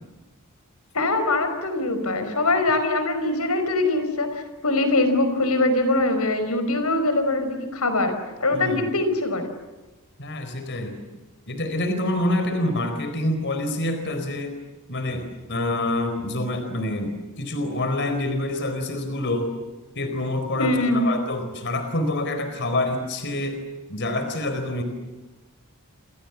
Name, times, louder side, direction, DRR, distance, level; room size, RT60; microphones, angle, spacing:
voice 1, 0.9-8.1 8.4-9.5 20.6-21.1, left 2 dB, 80° left, 8 dB, 5.2 m, -22 dB
voice 2, 8.5-8.8 10.2-11.0 11.5-14.6 14.9-19.5 19.9-23.6 23.9-24.8, left 1 dB, 55° left, 7 dB, 4.5 m, -27 dB
29.5 x 26.5 x 7.3 m, 1.1 s
head